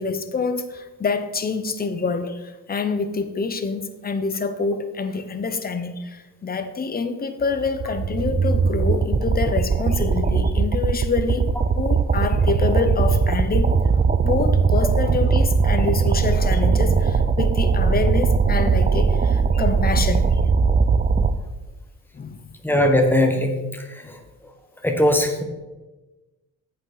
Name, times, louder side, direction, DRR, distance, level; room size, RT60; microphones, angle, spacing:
voice 1, 0.0-11.5 11.8-13.7 14.2-20.4 22.1-22.4, left 4 dB, 30° left, 10 dB, 0.8 m, -26 dB
sound 1, 7.5-21.3, right 5 dB, 25° right, 0.5 m, -19 dB
voice 2, 22.6-24.2 24.8-25.4, left 1 dB, 5° left, 4 dB, 1.2 m, -20 dB
8.5 x 7.9 x 4.0 m, 1.2 s
cardioid pair, 120°, 33 cm